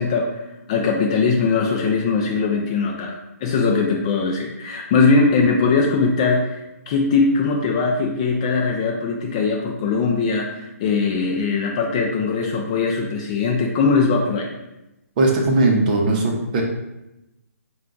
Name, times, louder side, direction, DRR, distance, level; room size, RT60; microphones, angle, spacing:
voice 1, 0.0-14.5, left 4 dB, 20° left, -1 dB, 0.3 m, -20 dB
voice 2, 15.2-16.6, right 2 dB, 30° right, 0 dB, 0.7 m, -18 dB
4.7 x 2.3 x 3.7 m, 0.91 s
hypercardioid pair, 160°, 9 cm